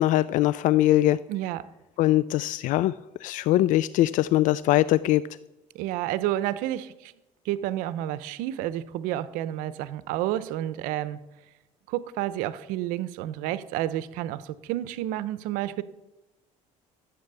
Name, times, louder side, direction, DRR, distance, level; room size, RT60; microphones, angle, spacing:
voice 1, 0.0-1.2 2.0-2.9 3.2-5.2, left 15 dB, 70° left, 17 dB, 0.4 m, -21 dB
voice 2, 1.3-1.7 5.7-7.1 7.4-11.2 11.9-15.8, right 13 dB, 90° right, 16 dB, 0.7 m, -30 dB
14.0 x 8.3 x 6.8 m, 1.0 s
cardioid pair, 115°, 14 cm